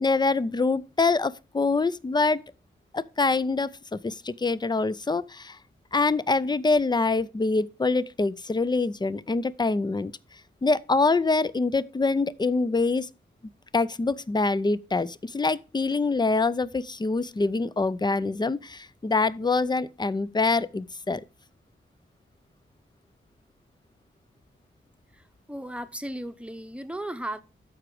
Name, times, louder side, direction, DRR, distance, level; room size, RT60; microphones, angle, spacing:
voice 1, 0.0-2.4 2.9-5.6 5.9-10.1 10.6-13.1 13.7-21.2, left 3 dB, 20° left, 0.5 m, -25 dB
voice 2, 25.5-27.4, right 1 dB, 5° right, 0.9 m, -35 dB
12.5 x 5.0 x 4.9 m
wide cardioid pair, 85°, 20 cm